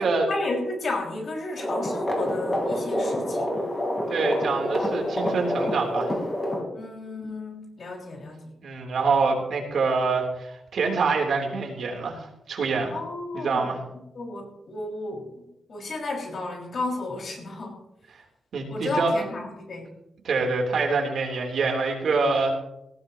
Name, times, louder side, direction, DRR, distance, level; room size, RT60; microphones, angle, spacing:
voice 1, 0.0-3.5 6.7-8.6 12.9-13.8 14.1-17.8 18.7-19.9, left 2 dB, 55° left, 0 dB, 5.6 m, -33 dB
sound 1, 1.6-6.6, equal, 20° left, 4.3 m, -27 dB
voice 2, 4.1-6.1 8.6-13.0 13.3-13.8 18.1-18.2 18.5-19.2 20.2-22.6, right 4 dB, 70° right, 1 dB, 3.5 m, -25 dB
18.5 x 15.5 x 3.0 m, 0.84 s
wide cardioid pair, 125°, 0 cm